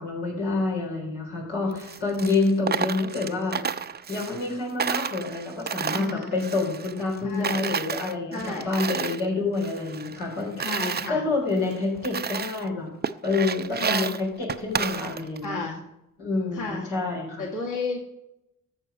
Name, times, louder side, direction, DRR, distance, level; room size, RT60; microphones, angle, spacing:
voice 1, 0.0-3.6 4.1-10.7 11.1-12.9 13.2-15.7 16.2-17.4, left 3 dB, 80° left, -2 dB, 3.9 m, -28 dB
Coin (dropping), 1.7-4.5 4.8-7.2 7.4-9.3 9.6-11.1 11.6-11.7 12.0-12.7 13.0-15.5, right 6 dB, 25° right, 0.6 m, -31 dB
voice 2, 5.9-6.4 7.2-7.6 8.3-8.7 10.6-11.2 13.8-14.1 15.4-15.8 16.5-16.9 17.4-18.0, left 4 dB, 50° left, -2 dB, 2.4 m, -32 dB
14.0 x 6.4 x 5.2 m, 0.87 s
hypercardioid pair, 45°, 40 cm